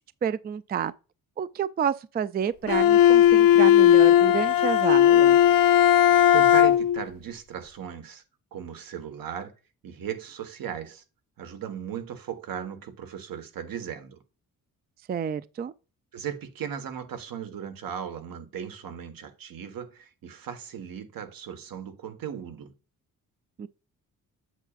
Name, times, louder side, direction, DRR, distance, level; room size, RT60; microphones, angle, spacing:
voice 1, 0.2-0.9 1.4-5.4 15.1-15.7 23.6-23.7, right 8 dB, 30° right, 0.4 m, -29 dB
Bowed string instrument, 2.7-7.0, left 11 dB, 80° left, 0.6 m, -17 dB
voice 2, 6.3-8.2 8.5-9.5 9.8-11.0 11.4-14.2 16.1-22.7, right 8 dB, 75° right, 1.4 m, -37 dB
8.1 x 7.1 x 2.4 m
cardioid pair, 105°, 34 cm